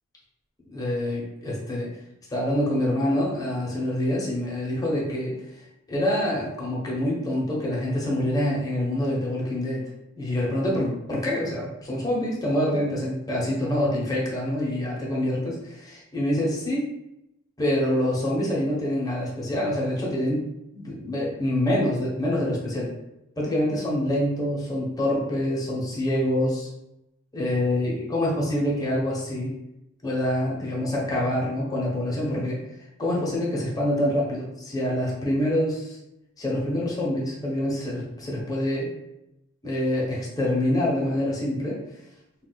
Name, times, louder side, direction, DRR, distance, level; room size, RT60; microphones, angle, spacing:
voice 1, 0.7-1.9 2.3-5.3 5.9-9.8 10.2-16.8 17.6-20.4 20.7-22.9 23.4-26.7 27.3-29.5 30.0-32.6 33.0-36.0 36.4-38.9 39.6-41.8, left 1 dB, 20° left, -4 dB, 0.8 m, -26 dB
2.3 x 2.3 x 3.9 m, 0.88 s
head